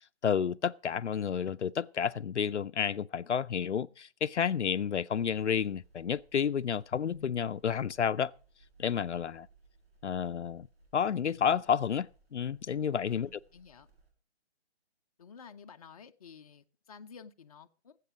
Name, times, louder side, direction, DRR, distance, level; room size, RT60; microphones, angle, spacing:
voice 1, 0.2-3.9 4.2-8.3 8.8-9.5 10.0-10.7 10.9-13.3, left 7 dB, 85° left, 0.5 m, -30 dB
sound 1, 5.1-14.1, right 4 dB, 60° right, 7.9 m, -63 dB
voice 2, 13.1-13.9 15.2-18.0, left 6 dB, 35° left, 0.6 m, -51 dB
17.5 x 8.3 x 4.9 m
figure-of-eight pair, 145°, 34 cm